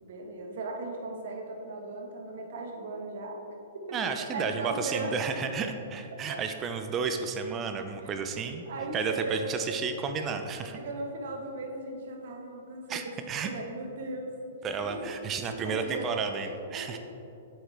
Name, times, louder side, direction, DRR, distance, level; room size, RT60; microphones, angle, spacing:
voice 1, 0.0-3.4 3.9-5.5 6.3-6.4 8.0-8.1 8.7-9.6 10.7-14.3 14.9-15.1 15.4-16.3 16.7-17.0, right 2 dB, 65° right, 1 dB, 1.5 m, -37 dB
voice 2, 3.9-8.7 8.9-10.8 12.9-13.5 14.6-17.0, right 5 dB, 25° right, 7 dB, 0.6 m, -32 dB
8.7 x 7.7 x 3.5 m, 2.8 s
hypercardioid pair, 115°, 0 cm